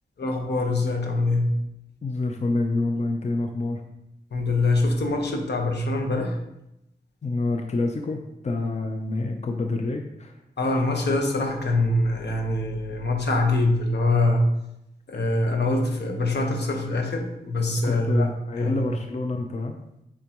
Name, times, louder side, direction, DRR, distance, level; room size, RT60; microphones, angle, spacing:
voice 1, 0.2-1.5 4.3-6.4 10.6-14.4 15.1-18.3 18.6-18.7, left 2 dB, 80° left, 2 dB, 1.2 m, -24 dB
voice 2, 2.0-3.8 7.2-10.4 17.8-19.8, left 2 dB, 40° left, 4 dB, 0.6 m, -27 dB
8.6 x 4.9 x 3.0 m, 0.86 s
wide cardioid pair, 125°, 17 cm